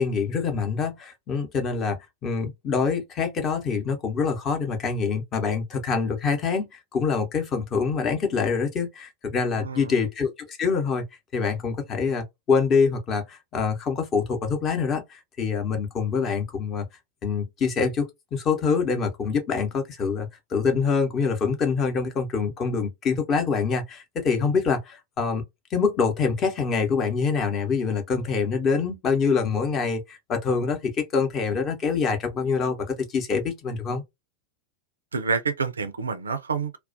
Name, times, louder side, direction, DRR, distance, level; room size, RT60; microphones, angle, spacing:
voice 1, 0.0-11.0 11.3-16.9 17.2-25.4 25.7-34.0, left 5 dB, 30° left, 0.8 m, -25 dB
voice 2, 9.5-10.1 35.1-36.8, right 5 dB, 75° right, 0.4 m, -28 dB
2.3 x 2.1 x 2.5 m
figure-of-eight pair, 90°, 0 cm